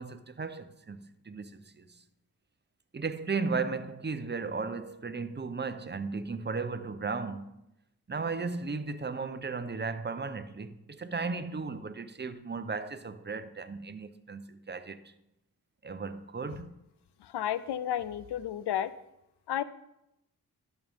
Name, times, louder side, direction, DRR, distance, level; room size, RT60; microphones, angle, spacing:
voice 1, 0.0-2.0 2.9-7.5 8.1-15.1 15.8-16.8, right 4 dB, 25° right, 0.8 m, -35 dB
voice 2, 17.2-18.9 19.5-19.6, left 10 dB, 85° left, 0.6 m, -32 dB
11.5 x 6.7 x 3.6 m
cardioid pair, 45°, 39 cm